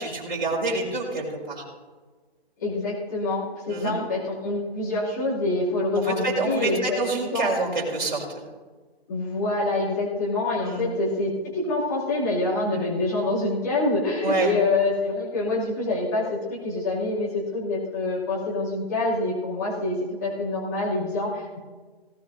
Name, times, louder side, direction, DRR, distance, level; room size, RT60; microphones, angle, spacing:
voice 1, 0.0-1.6 3.7-3.9 5.9-8.4 10.7-10.8 14.2-14.5, right 3 dB, 50° right, -3 dB, 5.5 m, -27 dB
voice 2, 2.6-7.0 7.3-7.5 9.1-21.6, left 2 dB, 15° left, -8 dB, 2.6 m, -26 dB
18.5 x 18.0 x 2.7 m, 1.4 s
hypercardioid pair, 175°, 32 cm